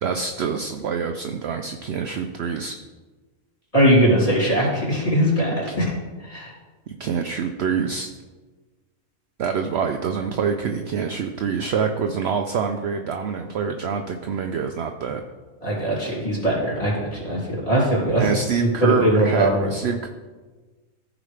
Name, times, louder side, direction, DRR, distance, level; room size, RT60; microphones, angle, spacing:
voice 1, 0.0-2.8 5.7-5.8 6.9-8.1 9.4-15.2 18.2-20.1, right 6 dB, 65° right, 5 dB, 0.7 m, -26 dB
voice 2, 3.7-5.8 6.2-6.5 15.6-18.2 18.8-19.7, equal, 25° left, -6 dB, 2.9 m, -20 dB
14.5 x 4.9 x 3.3 m, 1.3 s
omnidirectional pair, 1.5 m